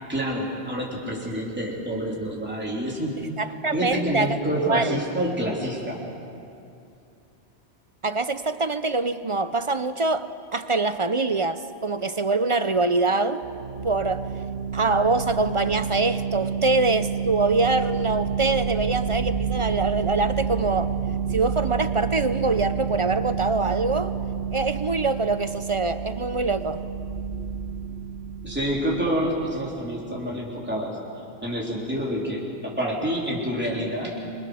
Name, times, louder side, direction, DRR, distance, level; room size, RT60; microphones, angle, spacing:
voice 1, 0.0-3.1 3.7-6.0 28.4-31.0 31.4-34.2, equal, 10° right, -4 dB, 3.7 m, -28 dB
voice 2, 3.4-5.0 8.0-13.4 13.8-14.3 14.7-20.9 21.3-24.1 24.5-26.8, right 3 dB, 35° right, 12 dB, 0.6 m, -24 dB
sound 1, 13.4-29.7, right 7 dB, 75° right, 1.6 m, -29 dB
27.5 x 23.5 x 6.4 m, 2.5 s
omnidirectional pair, 1.2 m